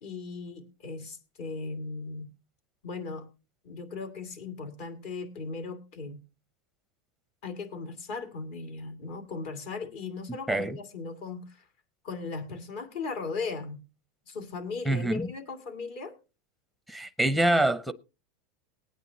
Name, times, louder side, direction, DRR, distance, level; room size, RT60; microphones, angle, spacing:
voice 1, 0.0-2.3 2.8-3.3 3.6-6.2 7.4-11.7 12.0-13.8 14.3-16.1, left 4 dB, 60° left, 2.3 m, -37 dB
voice 2, 10.3-10.8 14.9-15.3 16.9-17.9, right 1 dB, ahead, 0.7 m, -26 dB
20.0 x 9.1 x 2.8 m
supercardioid pair, 135°, 0 cm